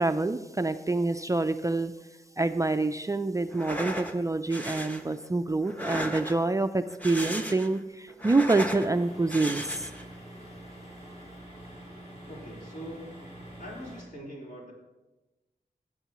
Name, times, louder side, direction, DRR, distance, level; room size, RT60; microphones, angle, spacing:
voice 1, 0.0-1.9 2.4-9.8, right 2 dB, 20° right, 8 dB, 0.4 m, -27 dB
sound 1, 3.5-4.1 4.5-5.0 5.6-6.5 6.9-7.8 8.1-8.9 9.3-10.0, equal, 10° left, 1.0 m, -35 dB
sound 2, 8.6-14.0, right 1 dB, 40° left, 4.4 m, -46 dB
voice 2, 12.3-13.3 13.6-14.7, equal, 60° left, -4 dB, 3.7 m, -43 dB
17.0 x 9.0 x 3.0 m, 1.1 s
wide cardioid pair, 125°, 16 cm